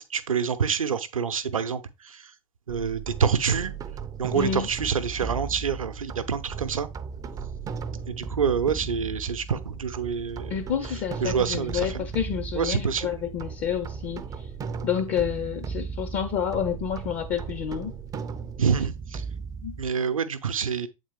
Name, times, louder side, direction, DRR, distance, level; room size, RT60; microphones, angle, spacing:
voice 1, 0.0-2.3 2.7-3.7 4.2-6.9 8.1-10.6 11.2-12.1 12.5-13.1 18.6-19.2 19.8-20.9, right 6 dB, 75° right, 0.7 m, -27 dB
sound 1, 2.7-19.9, right 5 dB, 20° right, 0.5 m, -36 dB
voice 2, 4.3-4.7 10.5-14.5 14.8-17.9 19.6-19.8, left 8 dB, 35° left, 0.7 m, -29 dB
7.7 x 4.0 x 3.2 m
figure-of-eight pair, 85°, 18 cm